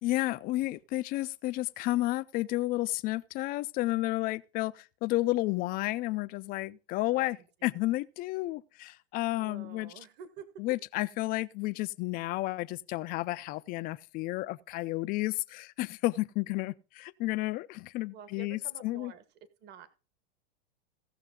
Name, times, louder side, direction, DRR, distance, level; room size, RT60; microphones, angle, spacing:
voice 1, 0.0-9.9 10.6-19.1, left 18 dB, 30° left, 0.4 m, -32 dB
voice 2, 9.3-10.5 18.1-19.2 19.6-19.9, right 7 dB, 30° right, 1.3 m, -49 dB
17.0 x 6.6 x 3.8 m
hypercardioid pair, 120°, 32 cm